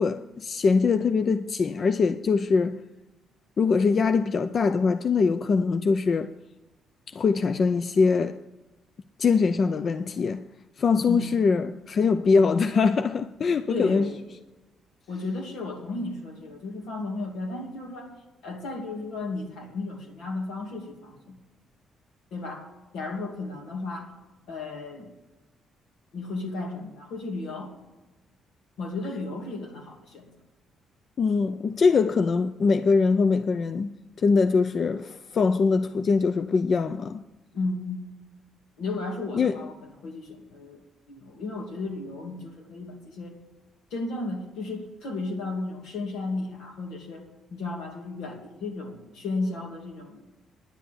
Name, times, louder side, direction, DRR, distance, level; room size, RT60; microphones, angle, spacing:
voice 1, 0.0-2.8 3.6-6.3 7.1-8.4 9.2-10.4 10.8-14.1 31.2-33.9 34.2-37.2 39.3-39.6, left 4 dB, 50° left, 0.4 m, -23 dB
voice 2, 11.1-11.4 13.7-14.2 15.1-18.1 18.4-21.4 22.3-22.7 22.9-24.1 24.5-25.1 26.1-27.8 28.8-30.3 37.5-38.0 38.8-40.8 41.1-43.4 43.9-50.2, left 2 dB, 85° left, 2.5 m, -34 dB
10.5 x 8.2 x 7.9 m
cardioid pair, 90°, 0 cm